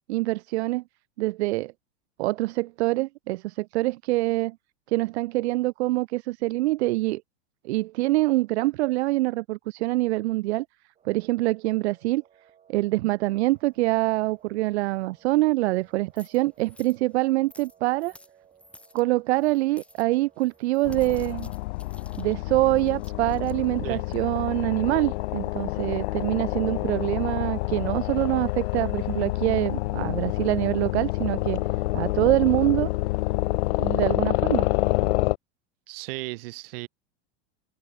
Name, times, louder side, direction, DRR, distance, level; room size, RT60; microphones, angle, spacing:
voice 1, 0.1-0.8 1.2-1.7 2.2-4.6 4.9-7.2 7.6-10.7 11.0-12.2 12.7-18.2 18.9-21.5 22.2-31.6 31.9-32.9 33.8-34.7, right 19 dB, 80° right, 0.6 m, -25 dB
sound 1, 10.9-21.1, right 8 dB, 20° right, 7.6 m, -60 dB
sound 2, 13.5-25.5, left 1 dB, 5° left, 6.9 m, -57 dB
sound 3, 20.8-35.4, left 19 dB, 80° left, 0.5 m, -28 dB
voice 2, 35.9-36.9, right 21 dB, 60° right, 2.7 m, -35 dB
open air
supercardioid pair, 160°, 32 cm